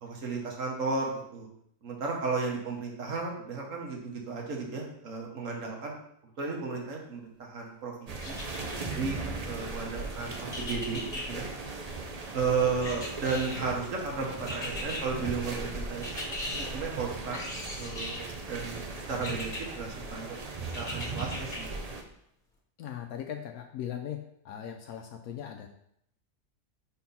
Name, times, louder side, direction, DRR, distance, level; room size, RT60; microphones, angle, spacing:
voice 1, 0.0-1.5 1.8-6.0 6.4-8.3 8.9-9.2 9.5-11.0 11.3-11.5 12.3-16.2 16.6-17.4 17.8-21.7, right 4 dB, 60° right, 0 dB, 1.6 m, -34 dB
sound 1, 8.1-22.0, right 3 dB, 45° right, 0.5 m, -38 dB
sound 2, 8.2-9.0 10.5-11.2 12.8-13.8 14.5-15.0 16.0-16.7 17.3-18.3 19.2-19.6 20.7-21.6 22.1-22.2, left 1 dB, 35° left, 1.4 m, -38 dB
voice 2, 22.8-24.2 24.4-25.7, left 9 dB, 80° left, 4 dB, 1.1 m, -38 dB
4.5 x 4.4 x 5.5 m, 0.72 s
omnidirectional pair, 1.5 m